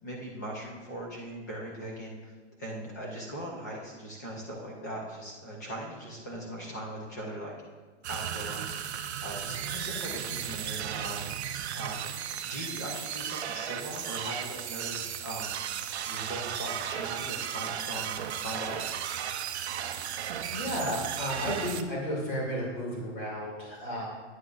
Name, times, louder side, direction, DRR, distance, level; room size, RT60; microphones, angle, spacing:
voice 1, 0.0-2.3 2.6-7.5 8.1-15.6 16.0-18.8, right 1 dB, 15° left, -3 dB, 0.5 m, -40 dB
sound 1, 8.0-21.8, right 9 dB, 65° right, 0.5 m, -35 dB
voice 2, 20.5-24.1, equal, 40° left, -4 dB, 2.4 m, -33 dB
9.2 x 8.0 x 2.4 m, 1.4 s
hypercardioid pair, 180°, 36 cm